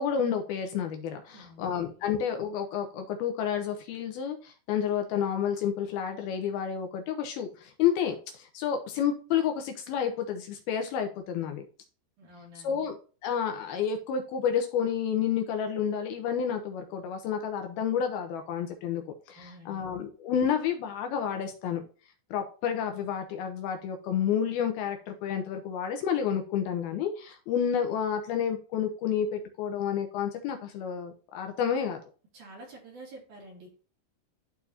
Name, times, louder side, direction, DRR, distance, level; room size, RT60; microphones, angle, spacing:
voice 1, 0.0-11.7 12.6-13.0 13.2-19.0 19.3-21.8 22.3-32.0, left 8 dB, 75° left, 5 dB, 2.5 m, -30 dB
voice 2, 1.3-1.7 12.2-12.8 19.4-20.0 32.3-33.8, right 1 dB, 50° right, -2 dB, 3.6 m, -49 dB
12.5 x 4.5 x 2.7 m, 0.37 s
omnidirectional pair, 4.8 m